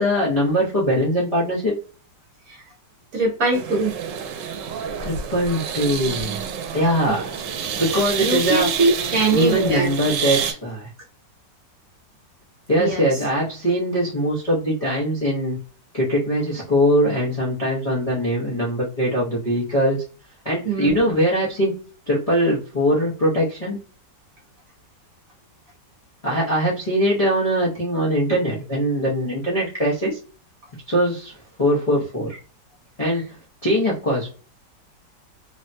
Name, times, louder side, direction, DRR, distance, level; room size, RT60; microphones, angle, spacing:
voice 1, 0.0-1.7 5.0-6.4 6.7-7.4 7.8-8.7 9.3-10.9 12.7-15.6 15.9-20.0 20.4-23.8 26.2-30.2 30.9-32.4 33.0-34.3, equal, 40° left, -7 dB, 0.5 m, -22 dB
voice 2, 3.1-4.0 7.0-7.3 8.2-9.9 12.8-13.2 20.6-21.0, right 3 dB, 65° right, -1 dB, 0.9 m, -22 dB
sound 1, 3.5-10.5, right 7 dB, 85° right, 1.2 m, -28 dB
3.2 x 2.1 x 2.6 m, 0.37 s
omnidirectional pair, 1.9 m